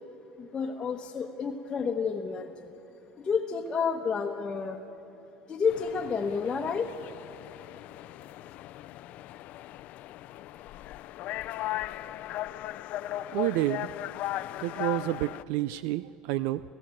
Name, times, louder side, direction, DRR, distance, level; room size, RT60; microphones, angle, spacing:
voice 1, 0.4-2.7 3.2-4.8 5.5-7.0, left 5 dB, 25° left, 0 dB, 1.2 m, -30 dB
sound 1, 5.7-15.4, left 14 dB, 55° left, 0.4 m, -38 dB
voice 2, 13.3-13.9 14.6-16.6, right 15 dB, 75° right, 15 dB, 0.4 m, -29 dB
29.5 x 15.5 x 7.7 m, 2.8 s
supercardioid pair, 130°, 3 cm